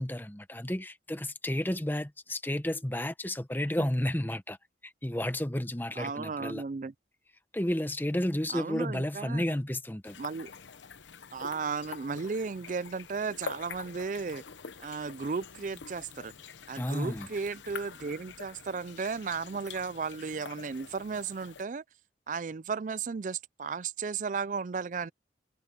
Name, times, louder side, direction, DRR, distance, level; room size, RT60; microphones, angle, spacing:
voice 1, 0.0-4.6 4.8-6.6 7.5-10.2 16.7-17.3, left 1 dB, 10° left, 0.9 m, -32 dB
voice 2, 6.0-6.9 8.5-9.6 10.2-10.5 11.3-14.4 14.8-16.3 16.7-21.8 22.3-25.1, right 5 dB, 45° right, 0.4 m, -35 dB
sound 1, 10.0-21.6, left 5 dB, 80° left, 0.9 m, -46 dB
head